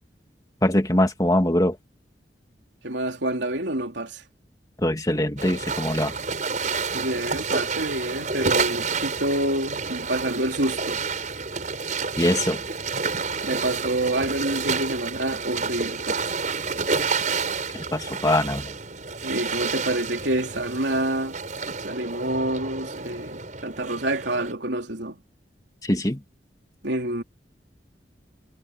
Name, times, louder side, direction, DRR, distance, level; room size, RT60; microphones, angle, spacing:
voice 1, 0.6-1.8 4.8-6.1 12.2-12.6 17.9-18.7 25.8-26.2, left 1 dB, 20° left, 2.2 m, -22 dB
voice 2, 2.8-4.2 6.9-11.0 13.4-16.3 19.2-21.4 21.8-25.2 26.8-27.2, right 1 dB, 85° right, 3.3 m, -27 dB
sound 1, 5.4-24.5, right 4 dB, 45° right, 5.5 m, -29 dB
head